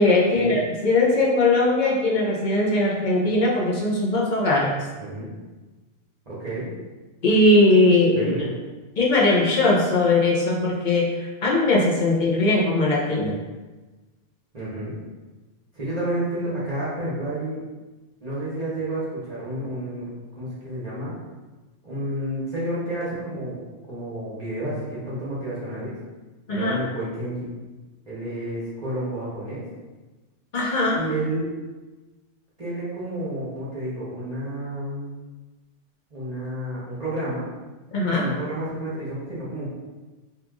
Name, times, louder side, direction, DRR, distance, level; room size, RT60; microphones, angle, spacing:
voice 1, 0.0-4.8 7.2-8.3 9.0-13.4 26.5-26.8 30.5-31.0 37.9-38.3, left 2 dB, 50° left, -4 dB, 0.7 m, -20 dB
voice 2, 4.9-5.3 6.3-6.7 8.1-8.5 14.5-15.0 15.7-17.6 18.2-20.1 20.4-21.1 21.8-23.6 23.9-25.9 26.5-27.5 28.1-29.6 30.9-31.4 32.6-35.1 36.1-37.5 38.1-39.7, right 1 dB, 35° right, -10 dB, 0.9 m, -30 dB
2.9 x 2.4 x 3.5 m, 1.2 s
omnidirectional pair, 1.2 m